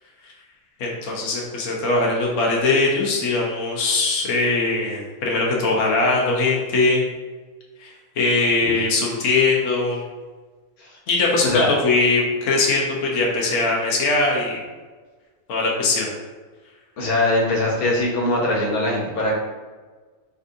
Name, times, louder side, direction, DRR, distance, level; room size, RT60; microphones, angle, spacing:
voice 1, 0.8-7.0 7.8-7.9 8.2-10.0 11.1-14.6 15.5-16.1, left 3 dB, 65° left, -2 dB, 1.2 m, -21 dB
voice 2, 17.0-19.4, left 1 dB, 90° left, -3 dB, 1.5 m, -21 dB
4.5 x 3.9 x 2.6 m, 1.4 s
omnidirectional pair, 1.5 m